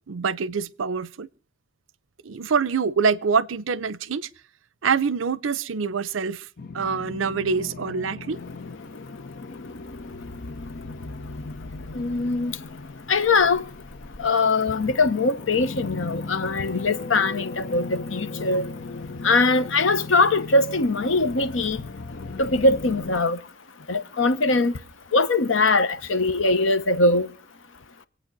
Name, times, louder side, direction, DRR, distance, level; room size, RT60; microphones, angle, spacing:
voice 1, 0.1-1.3 2.2-4.3 4.8-6.5 6.7-8.4, right 5 dB, 80° right, 0.6 m, -25 dB
sound 1, 6.6-23.2, left 3 dB, 55° left, 0.7 m, -37 dB
voice 2, 11.9-12.5 13.1-13.7 14.2-18.7 19.2-21.8 22.4-23.4 23.9-24.7 25.1-27.3, left 3 dB, 75° left, 1.0 m, -21 dB
26.0 x 8.7 x 3.9 m
head